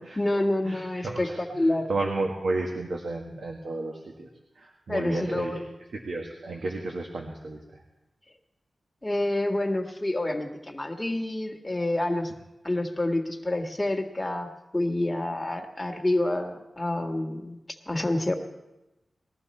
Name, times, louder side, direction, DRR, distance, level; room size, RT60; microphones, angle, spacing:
voice 1, 0.0-1.3 1.5-1.9 4.9-5.7 9.0-12.3 12.6-14.5 14.7-17.6 17.9-18.3, left 1 dB, 20° left, 3 dB, 1.6 m, -28 dB
voice 2, 0.6-4.3 4.6-5.6 5.9-7.8, right 2 dB, 80° right, 0 dB, 1.9 m, -32 dB
20.5 x 13.5 x 4.3 m, 0.98 s
wide cardioid pair, 80°, 0 cm